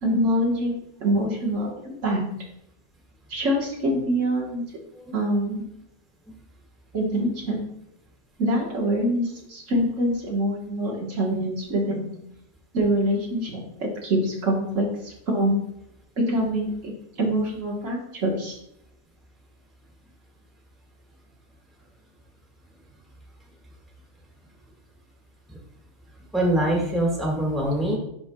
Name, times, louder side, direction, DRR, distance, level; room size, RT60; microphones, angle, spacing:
voice 1, 0.0-2.2 3.3-4.6 5.1-5.7 6.9-7.6 8.4-12.1 12.7-13.5 13.8-15.6 16.2-16.9 17.2-18.6, right 1 dB, 70° right, -2 dB, 1.6 m, -25 dB
voice 2, 26.3-28.0, right 1 dB, ahead, -2 dB, 1.5 m, -24 dB
10.5 x 4.3 x 2.2 m, 0.77 s
omnidirectional pair, 1.3 m